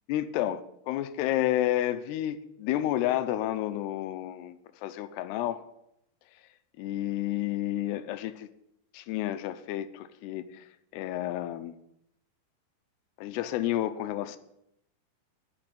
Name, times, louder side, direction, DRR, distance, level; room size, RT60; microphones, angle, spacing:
voice 1, 0.1-5.7 6.8-8.5 8.9-10.6 10.9-11.8 13.2-14.4, left 13 dB, 85° left, 12 dB, 2.8 m, -30 dB
9.8 x 6.9 x 9.0 m, 0.78 s
omnidirectional pair, 4.7 m